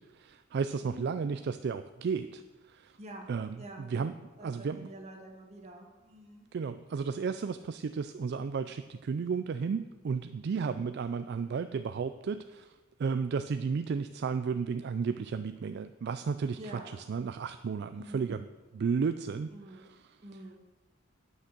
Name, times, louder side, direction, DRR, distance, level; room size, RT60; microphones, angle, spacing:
voice 1, 0.1-2.4 2.7-3.0 3.3-4.2 4.4-4.9 6.5-18.5 18.7-20.1, right 5 dB, 55° right, 10 dB, 0.3 m, -33 dB
voice 2, 0.8-1.1 3.0-3.3 3.6-3.9 4.4-6.5 16.5-16.9 17.9-18.3 19.5-19.9 20.2-20.6, right 1 dB, 35° right, 0 dB, 1.9 m, -47 dB
10.0 x 6.2 x 6.7 m, 1.2 s
head